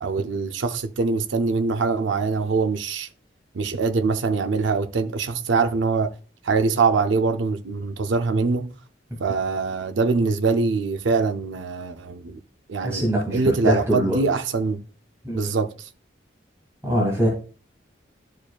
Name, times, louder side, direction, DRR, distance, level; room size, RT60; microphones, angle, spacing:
voice 1, 0.0-3.1 3.5-6.1 6.4-8.7 9.2-12.4 12.7-14.8 15.3-15.9, right 4 dB, 85° right, 0.5 m, -23 dB
voice 2, 12.8-14.2 15.2-15.5 16.8-17.3, equal, 15° right, 1.6 m, -23 dB
12.0 x 4.7 x 2.3 m
head